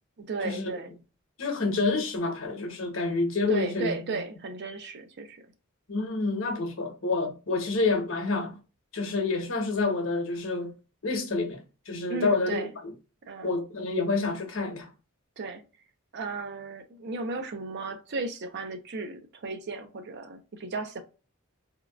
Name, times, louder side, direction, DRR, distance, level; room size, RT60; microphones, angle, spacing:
voice 1, 0.2-0.9 3.5-5.4 12.1-12.7 13.3-13.5 15.4-15.6 16.1-21.0, right 3 dB, 50° right, 0.5 m, -35 dB
voice 2, 1.4-4.2 5.9-8.5 8.9-10.7 11.0-12.7 13.4-14.9, left 3 dB, 65° left, 0.9 m, -28 dB
3.5 x 2.2 x 2.3 m
head